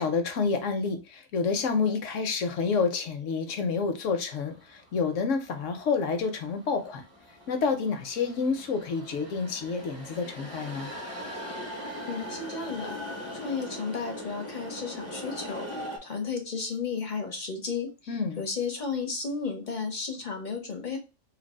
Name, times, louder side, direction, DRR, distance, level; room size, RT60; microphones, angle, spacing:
voice 1, 0.0-7.0 7.5-10.9 18.1-18.4, left 5 dB, 70° left, 1.0 m, -29 dB
sound 1, 4.4-16.0, left 1 dB, 15° right, 0.7 m, -41 dB
voice 2, 12.1-13.0 13.3-15.7 16.0-21.0, left 5 dB, 45° left, 0.7 m, -33 dB
2.8 x 2.6 x 4.1 m
omnidirectional pair, 1.4 m